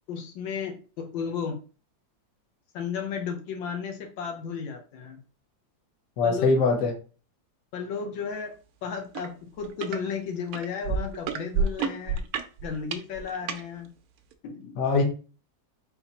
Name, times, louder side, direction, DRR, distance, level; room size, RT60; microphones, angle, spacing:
voice 1, 0.1-1.6 2.7-5.2 6.2-6.5 7.7-8.5 8.8-12.2 12.6-13.9 14.4-14.9, left 6 dB, 80° left, 1.5 m, -34 dB
voice 2, 6.2-6.9 14.8-15.0, left 3 dB, 50° left, 1.2 m, -22 dB
sound 1, 9.1-9.3 9.6-10.0 10.5-13.6 14.3-14.4, right 5 dB, 80° right, 0.8 m, -29 dB
4.2 x 3.9 x 2.8 m
omnidirectional pair, 2.1 m